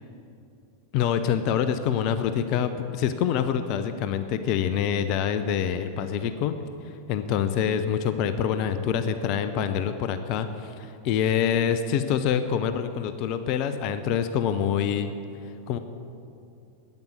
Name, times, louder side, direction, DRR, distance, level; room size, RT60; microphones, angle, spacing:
voice 1, 0.9-6.5 6.9-15.1 15.7-15.8, left 8 dB, 40° left, 10 dB, 0.6 m, -26 dB
10.5 x 9.4 x 7.5 m, 2.6 s
figure-of-eight pair, 90°, 0 cm